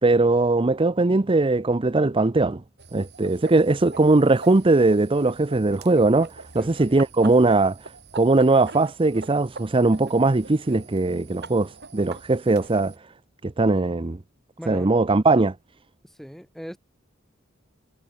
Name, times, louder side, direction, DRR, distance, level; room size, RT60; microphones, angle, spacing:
voice 1, 0.0-2.6 2.9-12.9 13.4-14.2 14.7-15.5, right 2 dB, 25° right, 0.6 m, -20 dB
sound 1, 2.8-13.0, right 4 dB, 60° right, 6.7 m, -43 dB
voice 2, 14.6-14.9 16.0-16.8, equal, ahead, 4.4 m, -40 dB
head